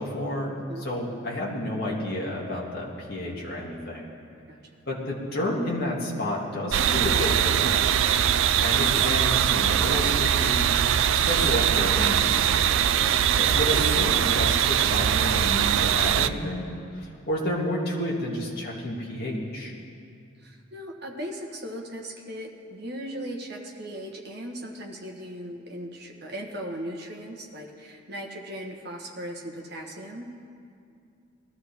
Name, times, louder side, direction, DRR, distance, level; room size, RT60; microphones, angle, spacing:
voice 1, 0.0-4.0 4.9-8.0 8.6-10.7 11.1-12.5 13.4-16.7 16.9-19.7, left 1 dB, 50° left, -4 dB, 2.4 m, -30 dB
sound 1, 6.7-16.3, right 9 dB, 70° right, 0.4 m, -22 dB
voice 2, 12.8-13.1 20.4-30.4, equal, 50° right, 2 dB, 1.4 m, -38 dB
20.0 x 13.5 x 3.6 m, 2.4 s
head